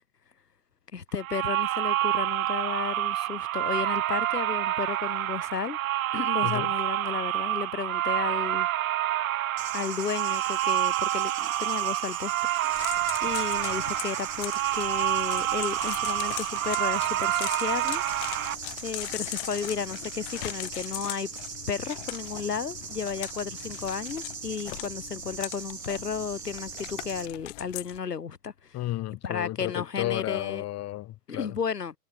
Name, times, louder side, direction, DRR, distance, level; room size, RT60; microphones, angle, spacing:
voice 1, 0.9-5.8 6.1-8.7 9.7-12.3 12.6-18.0 18.8-21.3 21.7-28.8 29.2-30.6 31.3-31.9, left 6 dB, 75° left, 6.5 m, -33 dB
sound 1, 1.2-18.6, right 14 dB, 55° right, 2.6 m, -28 dB
voice 2, 6.4-6.7 28.7-31.6, left 15 dB, 30° left, 6.1 m, -33 dB
sound 2, 9.6-27.3, right 6 dB, 80° right, 3.8 m, -40 dB
sound 3, 12.7-28.0, left 22 dB, 50° left, 5.1 m, -40 dB
figure-of-eight pair, 100°, 48 cm